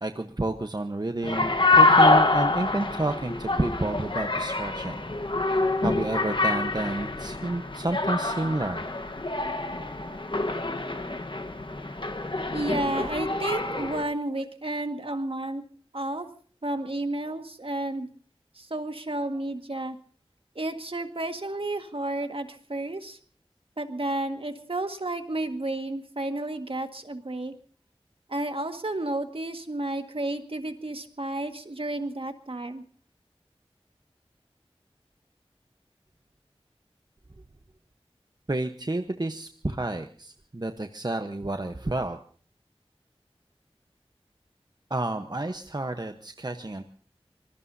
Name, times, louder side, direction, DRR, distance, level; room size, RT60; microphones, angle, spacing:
voice 1, 0.0-5.0 5.8-8.8 38.5-42.2 44.9-46.8, right 2 dB, 40° right, 7 dB, 1.0 m, -30 dB
sound 1, 1.2-14.0, left 2 dB, 50° left, 1.4 m, -25 dB
voice 2, 12.5-15.6 15.9-16.3 16.6-18.1 18.6-20.0 20.6-23.2 23.8-27.5 28.3-32.8, right 2 dB, 60° right, 6 dB, 1.8 m, -31 dB
25.5 x 20.5 x 2.8 m, 0.43 s
wide cardioid pair, 45°, 10 cm